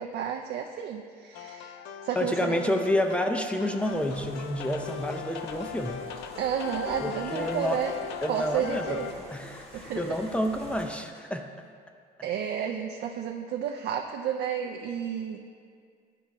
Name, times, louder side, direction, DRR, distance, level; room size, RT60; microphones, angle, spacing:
voice 1, 0.0-1.8 2.0-2.8 6.4-8.0 8.3-9.1 9.7-10.2 12.2-15.4, right 8 dB, 70° right, 3 dB, 0.4 m, -31 dB
sound 1, 1.3-9.1, left 8 dB, 85° left, 0.4 m, -39 dB
voice 2, 2.2-6.0 7.0-7.8 8.2-9.0 9.3-11.5, left 1 dB, 5° left, 5 dB, 0.4 m, -29 dB
sound 2, 3.8-10.9, left 1 dB, 35° left, 1.2 m, -47 dB
10.5 x 4.5 x 2.9 m, 2.2 s
cardioid pair, 110°, 17 cm